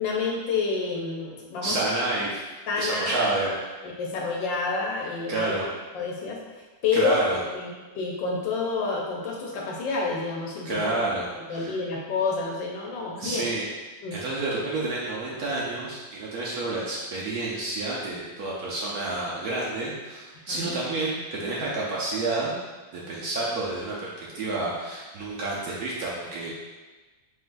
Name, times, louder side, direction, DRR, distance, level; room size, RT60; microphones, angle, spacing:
voice 1, 0.0-1.8 2.7-3.3 4.0-5.5 5.9-6.4 6.8-7.2 7.5-7.7 7.9-10.8 11.3-13.5 14.0-14.2 20.5-20.8, left 4 dB, 75° left, -2 dB, 1.4 m, -28 dB
voice 2, 1.6-2.3 2.8-3.6 5.3-5.7 6.9-7.4 10.6-11.8 13.2-13.6 14.1-22.6 22.9-26.5, right 2 dB, 65° right, -5 dB, 1.1 m, -29 dB
4.4 x 3.8 x 2.6 m, 1.2 s
omnidirectional pair, 2.1 m